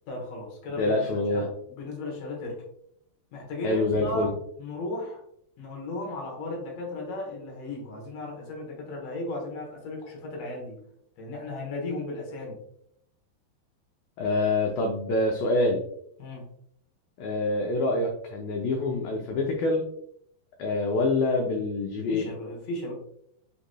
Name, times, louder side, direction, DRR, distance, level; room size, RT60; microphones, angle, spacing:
voice 1, 0.1-1.5 1.8-2.6 3.3-5.2 5.6-10.8 11.2-12.6 16.2-16.5 22.1-22.9, left 2 dB, 70° left, -1 dB, 1.6 m, -36 dB
voice 2, 0.8-1.5 3.6-4.3 14.2-15.8 17.2-19.8 20.6-22.3, left 2 dB, 90° left, 1 dB, 2.0 m, -26 dB
8.0 x 3.0 x 2.2 m, 0.71 s
omnidirectional pair, 4.8 m